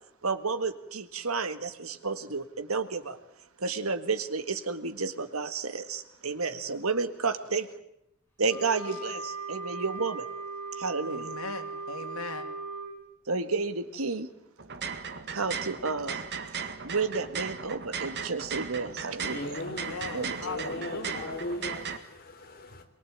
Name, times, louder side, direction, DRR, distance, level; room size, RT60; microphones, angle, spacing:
voice 1, 0.2-3.2 3.6-7.7 8.4-10.3 10.8-11.3 13.3-14.3 15.3-16.2 16.8-19.4 20.1-20.5, right 4 dB, 80° right, 1.8 m, -31 dB
Wind instrument woodwind instrument, 8.5-12.9, right 3 dB, 10° left, 7.4 m, -38 dB
voice 2, 11.1-12.4 19.5-21.3, left 3 dB, 90° left, 3.0 m, -39 dB
sound 1, 14.6-22.0, right 6 dB, 55° right, 2.0 m, -37 dB
voice 3, 19.2-22.9, left 2 dB, 45° left, 3.5 m, -38 dB
23.0 x 23.0 x 8.8 m
head